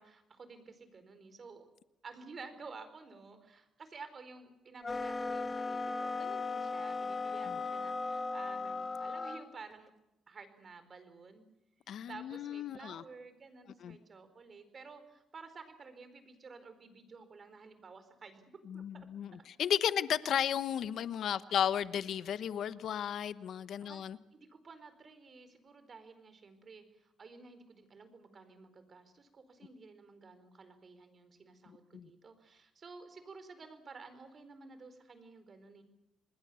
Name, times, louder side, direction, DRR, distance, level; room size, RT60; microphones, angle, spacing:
voice 1, 0.0-1.7 2.0-9.9 10.3-11.5 12.1-18.4 18.7-19.1 23.8-24.0 24.3-35.8, right 4 dB, 40° right, 10 dB, 4.5 m, -52 dB
sound 1, 4.8-9.5, left 3 dB, 25° left, 1.8 m, -37 dB
voice 2, 11.9-13.0 13.8-14.0 18.7-24.2 31.7-32.1, left 9 dB, 70° left, 14 dB, 1.0 m, -34 dB
28.0 x 20.5 x 7.0 m, 0.91 s
cardioid pair, 90°, 0 cm